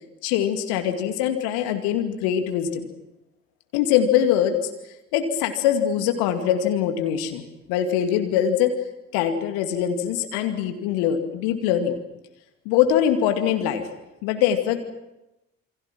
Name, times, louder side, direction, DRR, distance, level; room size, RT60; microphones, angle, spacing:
voice 1, 0.2-2.8 3.7-4.6 5.1-7.4 7.7-8.7 9.1-12.0 12.7-13.9 14.2-14.8, left 9 dB, 60° left, 6 dB, 2.4 m, -22 dB
28.5 x 23.5 x 6.1 m, 0.95 s
figure-of-eight pair, 50°, 43 cm